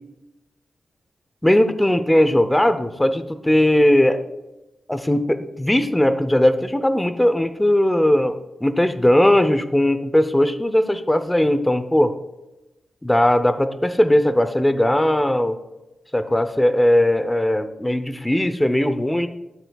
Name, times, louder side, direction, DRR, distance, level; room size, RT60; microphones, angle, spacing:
voice 1, 1.4-4.2 4.9-12.1 13.0-15.6 16.1-19.3, left 1 dB, 10° left, 10 dB, 0.6 m, -18 dB
21.0 x 8.0 x 2.3 m, 1.0 s
wide cardioid pair, 125°, 0 cm